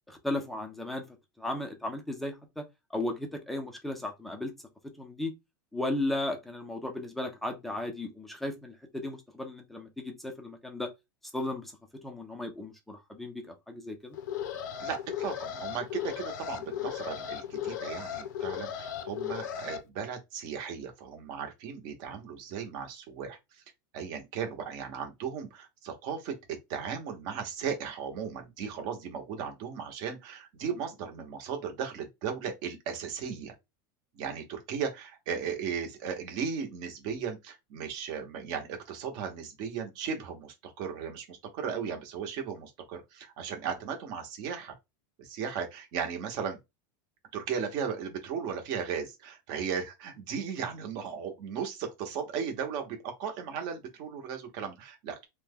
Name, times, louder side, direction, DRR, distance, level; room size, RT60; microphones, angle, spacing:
voice 1, 0.1-1.0 1.4-2.6 2.9-4.5 5.0-5.3 5.7-10.9 11.3-11.7 12.0-14.2, left 1 dB, ahead, 0.5 m, -35 dB
Alarm, 14.1-19.8, left 9 dB, 65° left, 0.6 m, -36 dB
voice 2, 14.8-23.6 23.9-26.4 26.7-33.5 34.1-44.7 45.2-46.6 47.3-55.2, right 7 dB, 40° right, 0.9 m, -36 dB
2.9 x 2.2 x 3.5 m
supercardioid pair, 175°, 11 cm